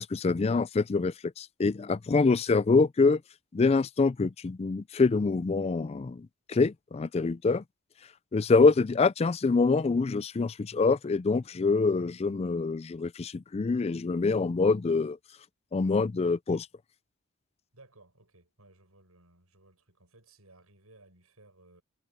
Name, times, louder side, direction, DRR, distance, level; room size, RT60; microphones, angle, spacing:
voice 1, 0.0-3.2 3.5-7.6 8.3-15.2 15.7-16.7, left 4 dB, 30° left, 0.3 m, -25 dB
voice 2, 17.7-21.8, right 2 dB, 75° right, 7.8 m, -59 dB
head